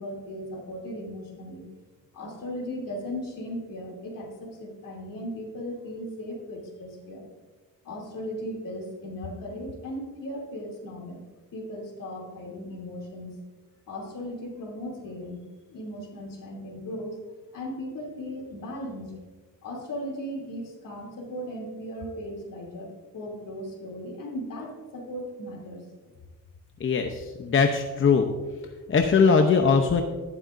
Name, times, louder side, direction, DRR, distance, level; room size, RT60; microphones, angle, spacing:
voice 1, 0.0-1.6 2.1-7.3 7.8-11.2 11.5-13.4 13.9-15.4 15.7-17.2 17.5-19.1 19.6-25.8, equal, 65° left, -1 dB, 3.0 m, -37 dB
voice 2, 26.8-28.2 28.9-30.0, left 5 dB, 35° left, 4 dB, 0.8 m, -21 dB
12.0 x 11.5 x 2.6 m, 1.2 s
cardioid pair, 120°, 35 cm